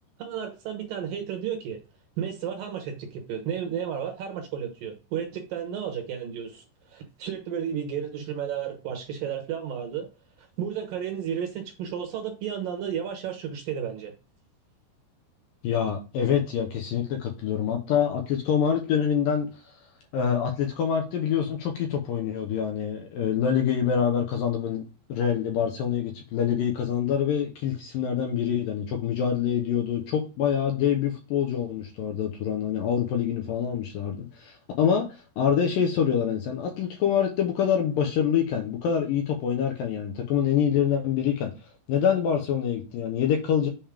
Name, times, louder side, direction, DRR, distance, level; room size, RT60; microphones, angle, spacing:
voice 1, 0.2-1.8 2.2-10.1 10.4-14.1, right 8 dB, 70° right, 2.3 m, -33 dB
voice 2, 15.6-19.5 20.1-24.8 25.1-41.5 41.9-43.7, left 8 dB, 70° left, 2.3 m, -26 dB
7.3 x 5.3 x 3.5 m
omnidirectional pair, 4.9 m